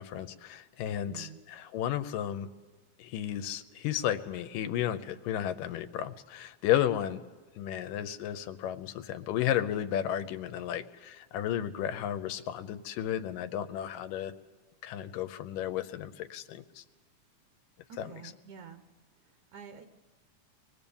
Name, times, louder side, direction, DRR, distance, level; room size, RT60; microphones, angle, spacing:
voice 1, 0.0-2.5 3.0-7.2 7.6-14.3 14.8-16.8 18.0-18.3, left 11 dB, 90° left, 10 dB, 2.5 m, -33 dB
voice 2, 1.1-1.4 17.9-18.8 19.5-19.9, right 7 dB, 70° right, 9 dB, 2.2 m, -47 dB
24.5 x 20.0 x 7.1 m, 1.3 s
omnidirectional pair, 3.7 m